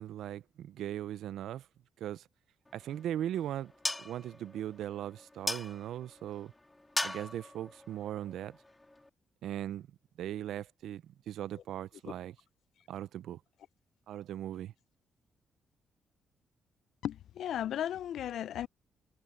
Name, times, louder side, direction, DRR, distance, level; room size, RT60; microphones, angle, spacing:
voice 1, 0.0-1.7 2.0-2.2 2.7-3.7 4.0-6.5 7.0-8.6 9.4-9.9 10.2-12.3 12.9-13.4 14.1-14.7, right 11 dB, 80° right, 0.5 m, -39 dB
sound 1, 2.7-9.1, left 2 dB, 15° left, 2.0 m, -41 dB
voice 2, 17.0-18.7, left 10 dB, 75° left, 0.4 m, -35 dB
cardioid pair, 85°, 0 cm